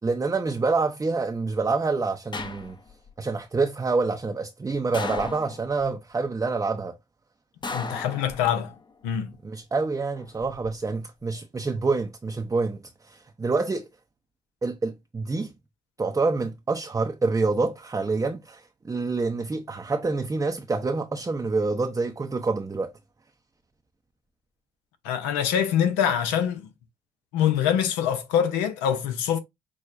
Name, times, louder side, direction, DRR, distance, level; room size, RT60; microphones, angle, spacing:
voice 1, 0.0-2.8 3.2-7.0 9.4-13.9 14.6-15.5 16.0-22.9, right 3 dB, 20° right, 0.6 m, -27 dB
sound 1, 2.3-3.1 4.9-5.9 7.6-8.8 10.2-10.7, left 4 dB, 25° left, 0.7 m, -36 dB
voice 2, 7.7-8.7 9.0-9.3 25.0-26.7 27.3-29.4, left 9 dB, 80° left, 0.7 m, -24 dB
6.1 x 2.2 x 2.5 m
hypercardioid pair, 50°, 17 cm